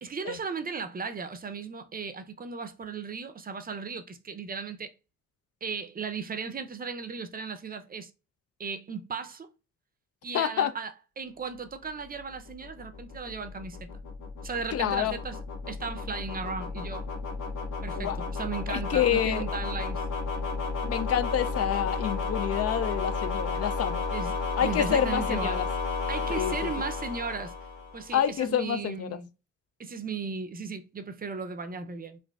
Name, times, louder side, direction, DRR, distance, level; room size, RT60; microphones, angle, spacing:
voice 1, 0.0-4.9 5.6-8.1 8.6-9.5 10.2-13.9 14.4-17.0 17.8-20.0 24.1-25.6 26.1-27.5 27.9-29.3 29.8-32.2, right 5 dB, 30° right, 0.5 m, -36 dB
voice 2, 10.3-10.7 14.7-15.2 17.9-18.2 18.7-19.4 20.8-24.0 24.6-25.7 26.3-26.7 28.1-29.2, left 10 dB, 55° left, 0.4 m, -28 dB
sound 1, 12.0-28.2, left 4 dB, 85° left, 1.1 m, -33 dB
5.0 x 2.5 x 2.3 m
cardioid pair, 90°, 30 cm